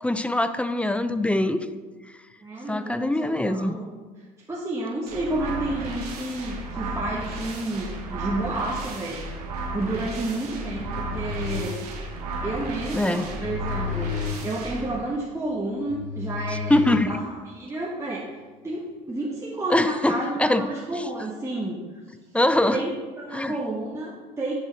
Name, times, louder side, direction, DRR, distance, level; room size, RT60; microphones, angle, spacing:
voice 1, 0.0-1.7 2.7-3.8 12.9-13.3 16.7-17.1 19.7-20.6 22.3-22.8 23.3-23.5, left 1 dB, 5° left, 11 dB, 0.5 m, -23 dB
voice 2, 2.4-3.9 4.5-9.3 9.7-11.8 12.4-14.1 14.4-18.3 18.6-22.0 22.7-24.5, right 2 dB, 15° right, -4 dB, 1.3 m, -30 dB
sound 1, 5.1-15.0, right 2 dB, 85° right, 1.4 m, -34 dB
sound 2, 10.7-17.6, left 7 dB, 70° left, 0.8 m, -34 dB
10.5 x 5.4 x 3.2 m, 1.4 s
hypercardioid pair, 65°, 20 cm